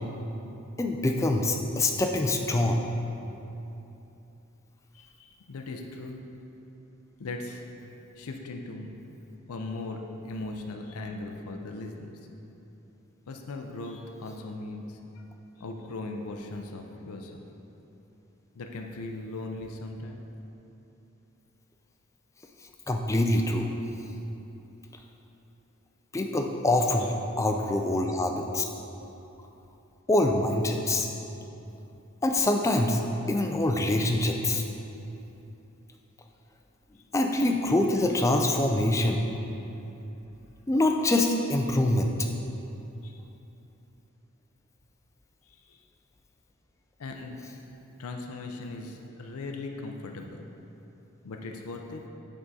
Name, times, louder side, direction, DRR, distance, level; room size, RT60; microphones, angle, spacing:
voice 1, 0.8-2.8 22.9-23.7 26.1-28.6 30.1-31.1 32.2-33.0 33.3-34.6 37.1-39.2 40.7-42.1, left 1 dB, 15° left, 3 dB, 0.3 m, -25 dB
voice 2, 4.9-6.2 7.2-7.6 8.2-9.0 9.5-12.2 13.3-15.2 15.6-17.4 18.5-20.2 27.0-27.1 43.0-43.2 45.5-45.8 47.0-47.4 48.0-50.4 51.2-52.0, left 2 dB, 90° left, 3 dB, 0.5 m, -38 dB
8.5 x 3.7 x 4.0 m, 3.0 s
head